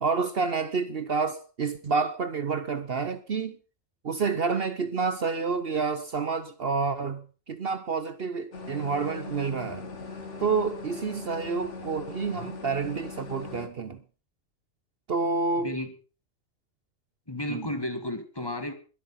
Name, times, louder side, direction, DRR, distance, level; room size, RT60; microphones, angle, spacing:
voice 1, 0.0-3.6 4.0-9.9 10.4-14.0 15.1-15.7 17.5-17.6, right 4 dB, 55° right, 1.0 m, -29 dB
sound 1, 8.5-13.7, left 4 dB, 65° left, 2.1 m, -40 dB
voice 2, 15.6-15.9 17.3-18.7, left 1 dB, 20° left, 1.8 m, -33 dB
22.0 x 8.1 x 5.7 m
omnidirectional pair, 1.3 m